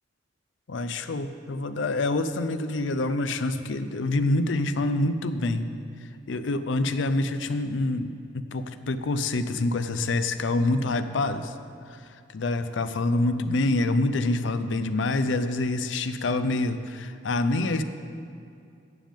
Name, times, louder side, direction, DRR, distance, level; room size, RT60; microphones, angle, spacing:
voice 1, 0.7-5.7 6.3-11.5 12.3-17.8, left 2 dB, 70° left, 11 dB, 0.6 m, -26 dB
14.5 x 8.9 x 3.7 m, 2.5 s
head